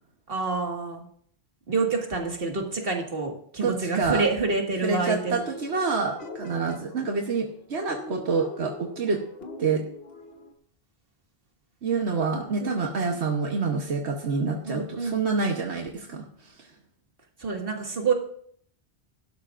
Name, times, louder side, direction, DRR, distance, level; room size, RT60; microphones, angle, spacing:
voice 1, 0.3-1.1 1.7-5.4 12.6-12.8 14.6-15.2 17.4-18.1, right 4 dB, 60° right, 1 dB, 2.1 m, -27 dB
voice 2, 3.6-4.2 4.8-9.2 9.6-9.8 11.8-16.7, right 4 dB, 80° right, 2 dB, 1.4 m, -27 dB
sound 1, 5.2-10.5, left 2 dB, 65° left, 1.5 m, -41 dB
17.5 x 12.0 x 2.5 m, 0.62 s
omnidirectional pair, 1.1 m